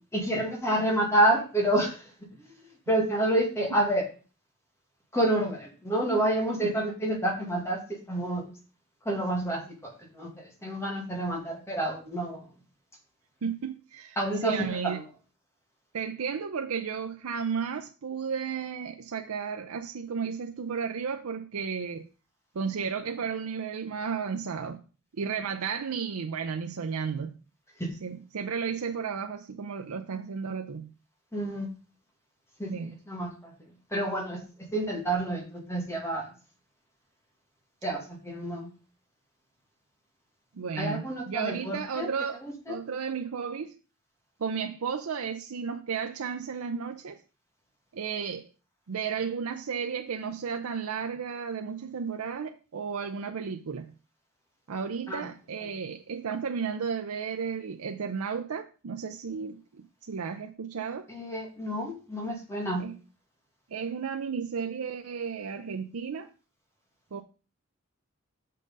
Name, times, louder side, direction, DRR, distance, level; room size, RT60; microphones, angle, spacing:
voice 1, 0.1-2.1 2.9-4.0 5.1-8.4 9.1-12.4 14.2-14.6 14.8-15.0 27.8-27.9 31.3-31.7 32.6-32.7 33.1-33.5 33.9-34.4 34.7-36.3 37.8-38.7 40.8-42.1 42.4-42.8 55.1-55.3 61.1-62.8, right 1 dB, 15° left, 2.0 m, -28 dB
voice 2, 13.4-15.0 15.9-22.1 22.5-24.8 25.2-27.4 28.0-30.9 32.7-33.0 40.5-42.4 42.7-43.7 44.4-47.2 47.9-48.5 48.9-53.9 54.7-61.1 62.8-62.9 63.7-66.3 67.1-67.2, right 6 dB, 90° right, 0.5 m, -33 dB
6.4 x 5.6 x 5.3 m
head